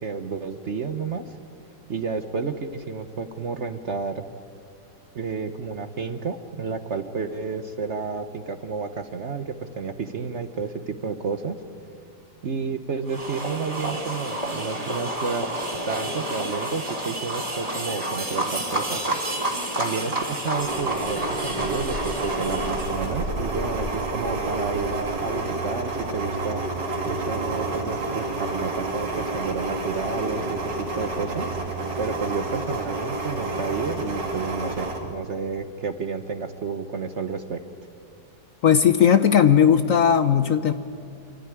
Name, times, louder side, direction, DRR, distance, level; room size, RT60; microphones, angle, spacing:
voice 1, 0.0-1.2 1.9-4.2 5.1-11.6 12.4-15.5 15.8-19.2 19.8-26.6 27.1-31.5 32.0-37.6, right 5 dB, 50° right, 9 dB, 1.0 m, -31 dB
sound 1, 13.1-23.2, right 1 dB, 20° right, 3.2 m, -30 dB
sound 2, 20.5-35.0, right 2 dB, 80° right, 3.4 m, -29 dB
voice 2, 38.6-40.7, left 8 dB, 60° left, 11 dB, 1.0 m, -17 dB
27.0 x 14.5 x 9.9 m, 2.6 s
omnidirectional pair, 1.9 m